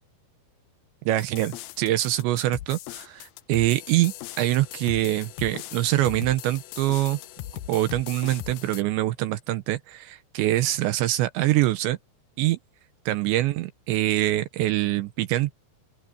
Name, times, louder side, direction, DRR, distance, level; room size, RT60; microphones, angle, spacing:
voice 1, 1.1-7.2 7.7-12.0 12.4-12.6 13.1-15.5, right 15 dB, 80° right, 3.2 m, -24 dB
sound 1, 1.2-8.8, left 14 dB, 85° left, 2.1 m, -39 dB
open air
omnidirectional pair, 5.2 m